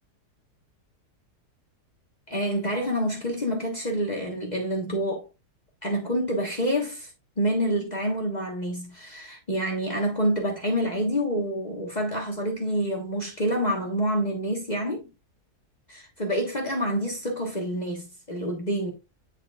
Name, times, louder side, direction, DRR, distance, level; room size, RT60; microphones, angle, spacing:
voice 1, 2.3-5.3 5.8-7.1 7.4-15.1 15.9-18.9, equal, 30° left, 1.4 m, -27 dB
9.9 x 4.6 x 2.4 m
omnidirectional pair, 1.7 m